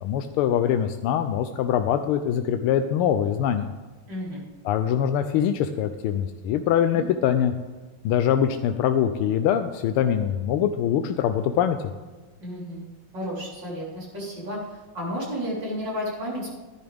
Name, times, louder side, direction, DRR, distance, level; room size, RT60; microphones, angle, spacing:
voice 1, 0.0-3.7 4.6-7.5 8.0-11.8, left 9 dB, 85° left, 7 dB, 1.5 m, -23 dB
voice 2, 4.1-4.4 6.8-7.1 12.4-12.8 13.1-16.6, equal, 55° right, -6 dB, 4.6 m, -32 dB
14.5 x 10.5 x 3.5 m, 1.3 s
omnidirectional pair, 2.4 m